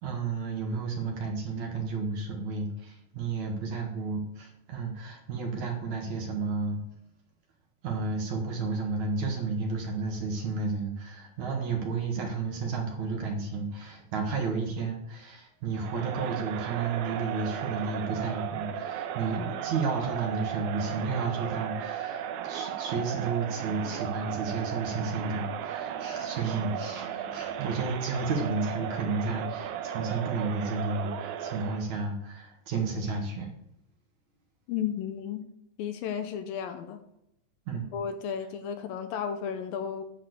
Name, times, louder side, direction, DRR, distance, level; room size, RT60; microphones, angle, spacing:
voice 1, 0.0-6.8 7.8-33.5 37.7-37.9, right 4 dB, 60° right, 1 dB, 2.5 m, -32 dB
Crowd, 15.7-31.9, right 9 dB, 85° right, 1.7 m, -36 dB
voice 2, 34.7-35.5 35.8-37.0 37.9-40.0, left 8 dB, 80° left, 9 dB, 2.2 m, -33 dB
10.5 x 4.3 x 7.7 m, 0.79 s
omnidirectional pair, 4.4 m